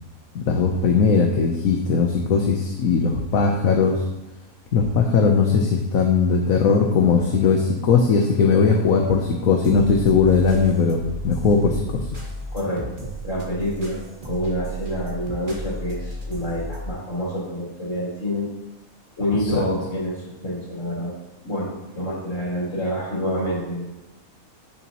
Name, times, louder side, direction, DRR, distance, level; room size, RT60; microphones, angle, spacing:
voice 1, 0.3-4.0 4.7-12.1 19.4-19.6, left 5 dB, 70° left, 2 dB, 1.3 m, -19 dB
sound 1, 7.1-7.7 8.0-16.9, right 1 dB, 35° right, 1.9 m, -35 dB
voice 2, 12.5-18.5 19.2-21.1 21.4-23.9, equal, 55° left, -6 dB, 4.4 m, -27 dB
15.5 x 7.0 x 3.0 m, 0.97 s
omnidirectional pair, 1.5 m